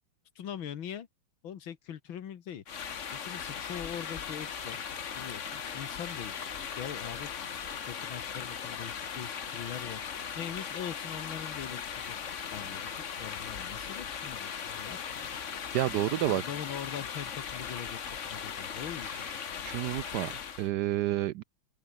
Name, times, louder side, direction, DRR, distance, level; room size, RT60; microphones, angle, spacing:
voice 1, 0.4-1.1 1.4-2.6 3.1-4.8 5.2-6.3 6.8-7.5 7.8-10.0 10.4-12.2 12.5-12.9 13.2-15.3 16.3-18.0 18.3-19.2, left 9 dB, 75° left, 2.2 m, -42 dB
sound 1, 2.7-20.7, left 7 dB, 45° left, 1.3 m, -38 dB
sound 2, 3.5-19.3, right 5 dB, 45° right, 2.6 m, -60 dB
voice 2, 15.7-16.4 19.1-21.4, right 14 dB, 75° right, 1.0 m, -30 dB
open air
omnidirectional pair, 2.2 m